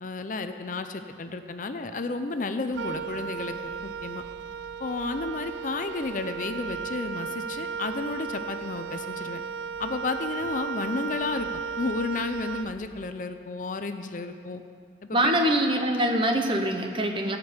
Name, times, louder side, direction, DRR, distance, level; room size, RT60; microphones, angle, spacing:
voice 1, 0.0-3.5 3.8-4.2 4.8-9.4 9.8-11.5 11.8-14.6 15.1-15.3, left 3 dB, 45° left, 8 dB, 0.5 m, -32 dB
Wind instrument woodwind instrument, 2.7-13.2, right 6 dB, 75° right, 0.3 m, -35 dB
voice 2, 15.1-17.4, right 1 dB, 30° right, 4 dB, 0.9 m, -24 dB
15.5 x 5.2 x 8.1 m, 2.2 s
head